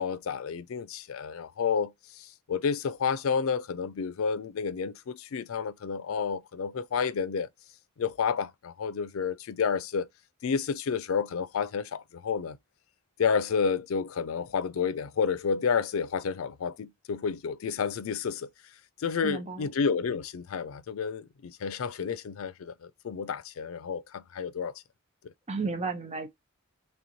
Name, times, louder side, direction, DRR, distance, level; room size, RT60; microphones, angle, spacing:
voice 1, 0.0-7.5 8.0-10.1 10.4-12.6 13.2-18.5 19.0-24.7 25.2-25.3, left 6 dB, 85° left, 0.4 m, -30 dB
voice 2, 19.2-19.7 25.5-26.3, right 4 dB, 30° right, 0.8 m, -33 dB
3.4 x 3.0 x 3.9 m
head